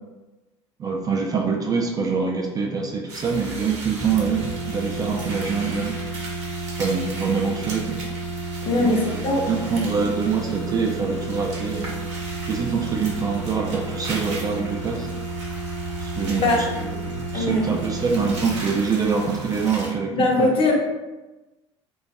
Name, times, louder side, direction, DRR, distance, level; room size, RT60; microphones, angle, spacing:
voice 1, 0.8-5.9 6.8-8.0 8.7-11.9 12.5-15.1 16.0-16.7 17.0-20.5, right 5 dB, 25° right, 0 dB, 0.3 m, -25 dB
sound 1, 3.1-19.9, right 2 dB, 75° right, 0.6 m, -37 dB
sound 2, 3.9-18.6, right 3 dB, 85° left, 0.5 m, -32 dB
voice 2, 8.6-9.4 16.4-16.6 17.3-17.7 20.1-20.7, left 2 dB, 40° left, -1 dB, 0.7 m, -20 dB
2.3 x 2.2 x 2.6 m, 1.1 s
figure-of-eight pair, 65°, 15 cm